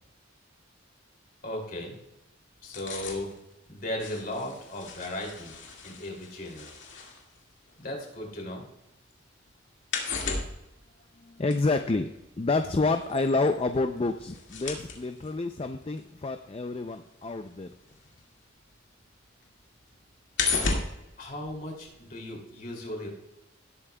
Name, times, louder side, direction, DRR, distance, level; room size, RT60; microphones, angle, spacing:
voice 1, 1.4-2.0 2.6-3.3 3.7-5.5 5.8-6.7 7.8-8.6 21.2-23.1, left 1 dB, 45° left, 0 dB, 2.8 m, -36 dB
sound 1, 2.6-8.7 9.0-18.7 19.0-22.1 22.4-22.5, left 4 dB, 70° left, 2.0 m, -36 dB
voice 2, 11.2-12.1 12.4-17.7, left 3 dB, 30° left, 7 dB, 0.4 m, -28 dB
18.0 x 8.4 x 2.3 m, 0.89 s
head